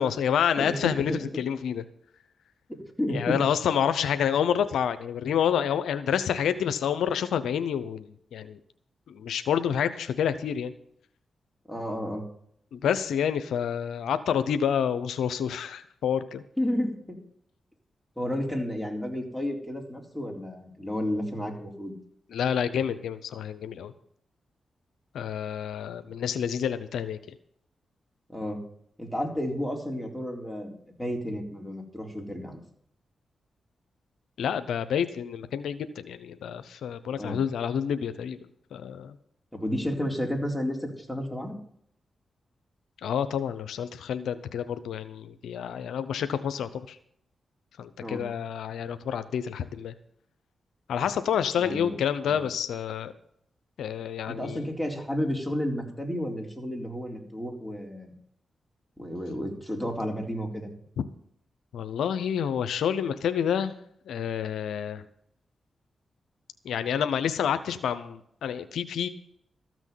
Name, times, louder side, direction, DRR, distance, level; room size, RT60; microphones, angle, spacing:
voice 1, 0.0-1.1 1.4-1.8 3.1-8.6 9.1-10.7 12.7-16.4 22.3-23.9 25.1-27.2 34.4-38.4 38.7-39.2 43.0-47.0 47.8-49.9 50.9-53.1 53.8-54.6 61.7-63.7 64.1-65.0 66.6-69.1, left 8 dB, 90° left, 11 dB, 0.7 m, -28 dB
voice 2, 3.0-3.5 11.7-12.2 16.6-17.2 18.2-21.9 28.3-28.6 29.0-32.6 37.2-37.4 39.5-41.6 48.0-48.2 51.5-52.4 54.3-58.1 59.0-60.7, equal, ahead, 1 dB, 3.9 m, -32 dB
13.5 x 6.3 x 9.1 m, 0.68 s
cardioid pair, 55°, 0 cm